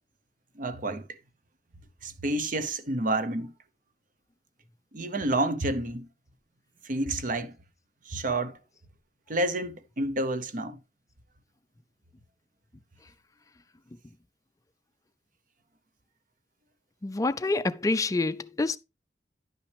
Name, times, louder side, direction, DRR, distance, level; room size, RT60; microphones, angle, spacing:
voice 1, 0.6-1.0 2.0-3.5 4.9-6.1 6.8-7.5 8.1-8.6 9.3-10.8, right 2 dB, 50° right, 0.8 m, -29 dB
voice 2, 17.0-18.8, left 3 dB, 20° left, 0.4 m, -27 dB
10.5 x 5.7 x 3.4 m
head